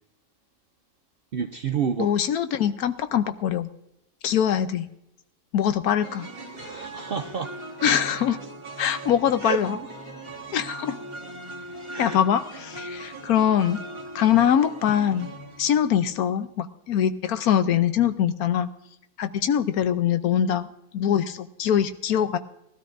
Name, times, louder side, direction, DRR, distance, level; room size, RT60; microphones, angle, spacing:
voice 1, 1.3-2.1 6.5-7.6 9.4-9.6 11.9-12.2, right 6 dB, 70° right, 8 dB, 0.5 m, -29 dB
voice 2, 2.0-3.7 4.2-4.9 5.5-6.3 7.8-8.4 8.8-9.8 10.5-11.0 12.0-13.8 14.1-18.7 19.2-20.7 20.9-22.4, left 9 dB, 80° left, 10 dB, 1.2 m, -23 dB
sound 1, 6.0-16.2, right 2 dB, 20° right, 1.6 m, -39 dB
19.5 x 13.0 x 2.6 m, 0.81 s
omnidirectional pair, 1.6 m